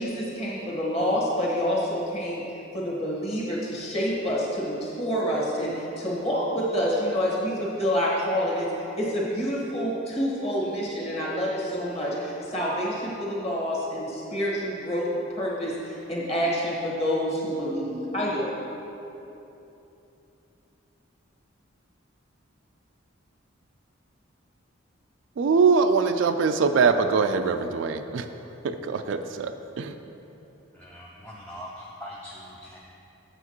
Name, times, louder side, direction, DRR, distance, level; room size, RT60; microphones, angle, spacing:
voice 1, 0.0-2.4 2.7-18.5, equal, 30° left, -5 dB, 1.4 m, -27 dB
voice 2, 25.4-28.3 28.6-29.9, right 5 dB, 65° right, 8 dB, 0.3 m, -23 dB
voice 3, 30.7-32.8, equal, 5° left, -4 dB, 0.4 m, -42 dB
8.0 x 7.8 x 3.0 m, 3.0 s
head